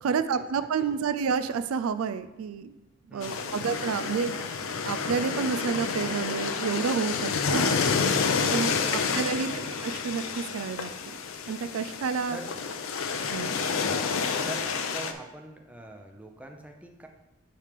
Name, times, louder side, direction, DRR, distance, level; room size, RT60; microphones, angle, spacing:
voice 1, 0.0-2.7 3.1-4.3 4.8-7.7 8.5-9.5 9.8-10.9 11.5-12.4 13.3-13.6, right 6 dB, 80° right, 12 dB, 0.4 m, -29 dB
voice 2, 3.1-3.6 8.7-9.6 12.3-12.7 13.6-14.0 14.4-17.1, right 2 dB, 5° right, 3 dB, 0.5 m, -44 dB
sound 1, 3.2-15.1, left 5 dB, 75° left, 0.5 m, -29 dB
8.6 x 3.2 x 5.1 m, 0.98 s
head